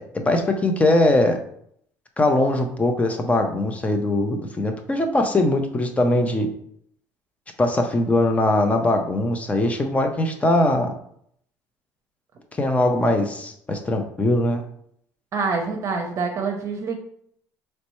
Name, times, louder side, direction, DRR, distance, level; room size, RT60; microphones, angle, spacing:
voice 1, 0.1-1.4 2.2-6.5 7.6-10.9 12.6-14.6, left 1 dB, 20° left, 5 dB, 0.6 m, -21 dB
voice 2, 15.3-17.0, right 4 dB, 45° right, 2 dB, 0.7 m, -26 dB
4.2 x 3.2 x 3.0 m, 0.67 s
cardioid pair, 105°, 7 cm